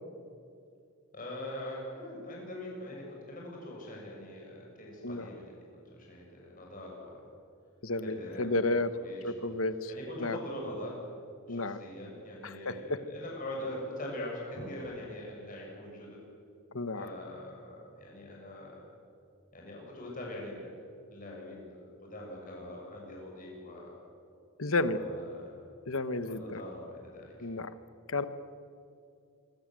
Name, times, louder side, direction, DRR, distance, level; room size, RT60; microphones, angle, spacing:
voice 1, 1.1-7.2 8.0-8.6 9.0-9.5 9.9-11.0 11.5-16.2 17.0-18.9 19.5-20.7 21.1-24.0 24.9-25.5 26.3-27.3, left 1 dB, 40° left, -2 dB, 7.0 m, -42 dB
voice 2, 7.8-8.9 9.2-9.9 10.2-10.4 11.5-11.8 12.4-13.0 16.7-17.1 24.6-25.0 25.9-26.6 27.4-27.7 28.1-28.2, left 2 dB, 70° left, 12 dB, 1.4 m, -32 dB
27.5 x 24.0 x 7.8 m, 2.5 s
head